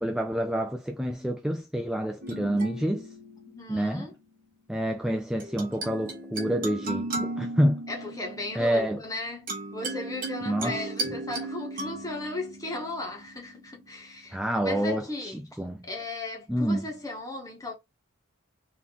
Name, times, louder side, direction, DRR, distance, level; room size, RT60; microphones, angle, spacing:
voice 1, 0.0-3.1 3.7-4.1 4.7-7.8 8.5-9.0 10.5-10.8 14.3-15.9 16.5-16.9, equal, 5° right, 0.4 m, -28 dB
sound 1, 2.2-4.0 5.4-13.9, right 2 dB, 45° right, 1.4 m, -36 dB
voice 2, 3.4-4.1 7.9-17.7, left 2 dB, 15° left, 1.4 m, -36 dB
3.8 x 3.0 x 3.9 m
head